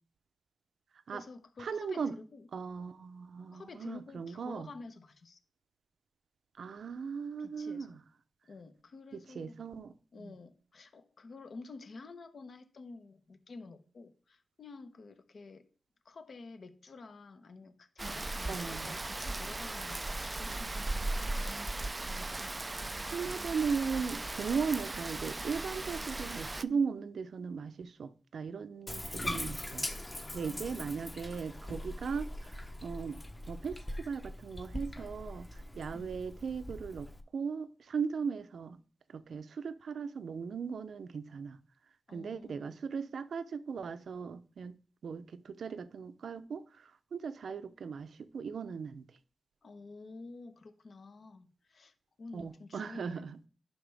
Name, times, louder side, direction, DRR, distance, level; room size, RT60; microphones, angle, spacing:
voice 1, 1.1-2.5 3.5-5.4 7.4-8.0 8.5-9.6 10.1-15.7 16.0-20.8 30.4-31.0 35.9-36.2 42.1-42.8 49.6-53.5, left 3 dB, 55° left, 1.0 m, -50 dB
voice 2, 1.6-2.1 2.5-4.7 6.6-8.0 9.4-10.3 18.5-18.9 22.0-22.5 23.1-29.9 30.3-33.2 33.5-35.5 35.7-38.8 39.1-41.6 42.1-44.8 45.0-49.0 52.3-53.4, right 5 dB, 70° right, 0.6 m, -38 dB
Rain, 18.0-26.6, right 2 dB, 20° right, 0.3 m, -37 dB
Bathtub (filling or washing), 28.9-37.2, left 1 dB, 15° left, 0.9 m, -41 dB
11.0 x 5.7 x 3.5 m
wide cardioid pair, 105°, 0 cm